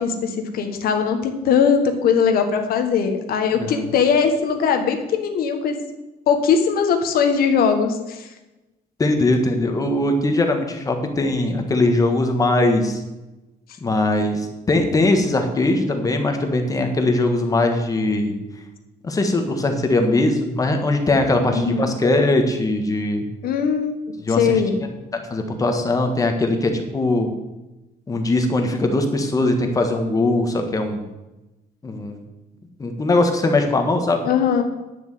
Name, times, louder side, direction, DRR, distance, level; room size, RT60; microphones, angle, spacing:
voice 1, 0.0-5.8 6.3-8.3 21.5-21.9 23.4-23.9 24.4-24.8 34.2-34.6, left 6 dB, 70° left, 6 dB, 1.4 m, -20 dB
voice 2, 9.0-13.0 13.8-18.3 19.0-23.3 24.2-24.6 25.1-27.3 28.1-31.0 31.8-32.2 32.8-34.2, left 2 dB, 20° left, 5 dB, 1.6 m, -20 dB
10.0 x 7.1 x 7.7 m, 1.0 s
cardioid pair, 155°, 16 cm